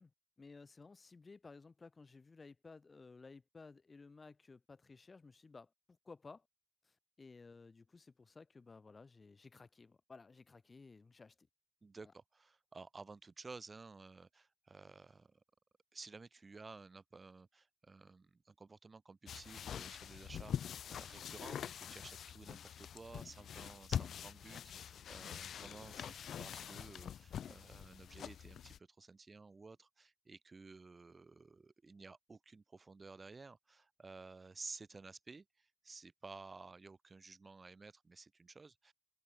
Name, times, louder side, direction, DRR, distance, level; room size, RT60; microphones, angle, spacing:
voice 1, 0.0-6.5 6.8-11.5, left 4 dB, 35° left, 2.0 m, -57 dB
voice 2, 11.8-15.4 15.9-38.9, right 4 dB, 30° right, 3.8 m, -54 dB
sound 1, 19.3-28.8, left 9 dB, 75° left, 0.3 m, -45 dB
open air
cardioid pair, 90°, 0 cm